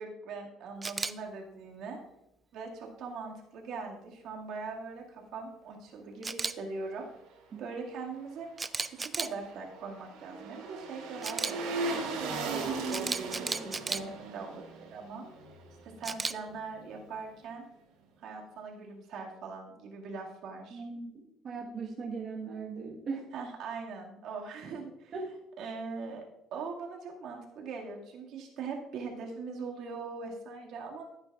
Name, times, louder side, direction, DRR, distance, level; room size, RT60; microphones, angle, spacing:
voice 1, 0.0-2.0 2.5-7.1 7.6-8.5 8.9-12.6 12.9-15.3 15.8-17.7 18.2-20.8 23.3-25.1 25.6-26.2 26.5-31.0, right 4 dB, 60° right, 0 dB, 2.1 m, -41 dB
Camera, 0.8-1.1 6.2-6.5 8.6-9.3 11.2-11.5 12.9-14.0 16.0-16.3, right 3 dB, 15° right, 0.3 m, -33 dB
sound 1, 9.0-16.2 16.5-16.6, right 3 dB, 85° right, 3.4 m, -38 dB
voice 2, 20.7-23.3 25.1-25.3, right 4 dB, 40° right, -3 dB, 1.3 m, -39 dB
15.0 x 8.7 x 2.4 m, 0.88 s
cardioid pair, 140°, 0 cm